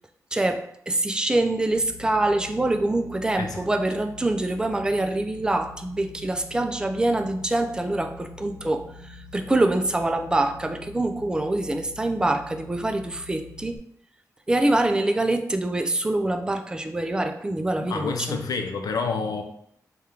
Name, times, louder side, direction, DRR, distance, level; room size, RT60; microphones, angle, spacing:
voice 1, 0.3-13.8 14.5-18.4, right 2 dB, 10° right, 6 dB, 0.3 m, -25 dB
sound 1, 1.7-13.8, left 3 dB, 80° right, 0.7 m, -45 dB
voice 2, 17.8-19.4, left 4 dB, 75° left, 5 dB, 0.5 m, -28 dB
3.5 x 2.4 x 4.4 m, 0.71 s
wide cardioid pair, 110°, 6 cm